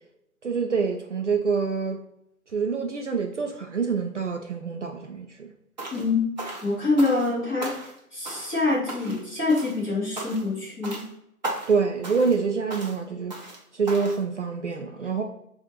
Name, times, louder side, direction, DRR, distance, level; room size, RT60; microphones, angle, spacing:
voice 1, 0.4-2.0 2.5-5.5 11.7-13.4 13.7-15.2, right 5 dB, 55° right, 0.5 m, -26 dB
sound 1, 5.8-6.1 6.4-7.3 7.6-8.6 8.9-9.2 9.5-9.8 10.2-10.5 10.8-11.1 11.4-11.8 12.0-12.4 12.7-13.0 13.3-13.6 13.9-14.2, right 2 dB, 30° right, 0.8 m, -36 dB
voice 2, 6.6-7.7 8.1-11.0, left 3 dB, 10° left, 1.3 m, -25 dB
5.8 x 2.5 x 2.9 m
figure-of-eight pair, 145°, 44 cm